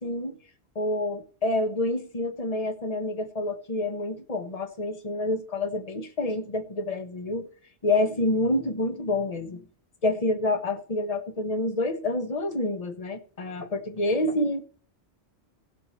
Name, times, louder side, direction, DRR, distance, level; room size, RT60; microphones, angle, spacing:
voice 1, 0.0-0.4 0.7-7.5 7.8-9.7 10.0-14.6, left 2 dB, 35° left, 1.3 m, -28 dB
17.5 x 7.8 x 3.2 m
omnidirectional pair, 1.1 m